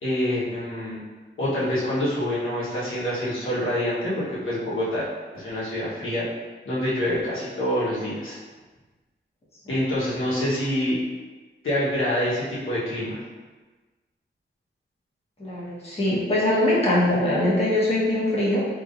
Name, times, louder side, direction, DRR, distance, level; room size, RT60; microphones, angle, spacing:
voice 1, 0.0-1.0 1.4-5.0 5.3-6.2 6.6-8.4 9.7-11.0 11.6-13.2, left 1 dB, 85° left, -9 dB, 1.2 m, -26 dB
voice 2, 15.4-18.7, left 1 dB, 30° left, -8 dB, 1.1 m, -22 dB
3.6 x 3.1 x 2.5 m, 1.3 s
wide cardioid pair, 85°, 20 cm